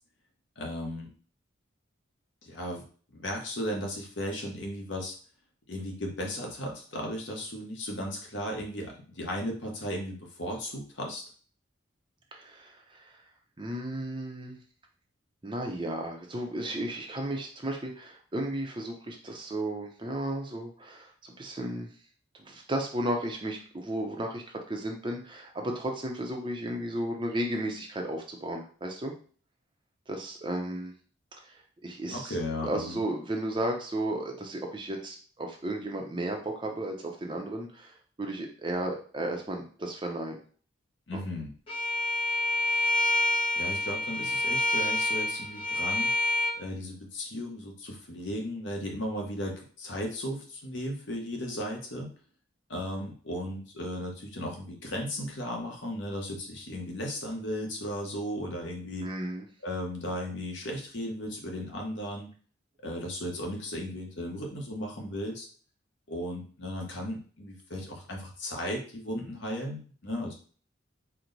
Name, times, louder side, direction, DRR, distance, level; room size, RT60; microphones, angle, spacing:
voice 1, 0.6-1.1 2.4-2.8 3.1-5.2 5.7-11.2 32.1-33.0 41.1-41.5 43.5-46.1 46.6-52.1 52.7-59.1 59.6-62.3 62.8-65.5 66.1-70.3, equal, 65° left, 0 dB, 1.0 m, -35 dB
voice 2, 12.3-13.1 13.6-14.6 15.4-21.9 22.4-29.1 30.1-30.9 31.4-32.4 32.6-40.4 41.1-41.2 59.0-59.4, right 1 dB, 25° right, 2 dB, 0.6 m, -34 dB
Bowed string instrument, 41.7-46.5, left 1 dB, 30° left, 1.2 m, -27 dB
4.5 x 2.1 x 3.9 m, 0.42 s
head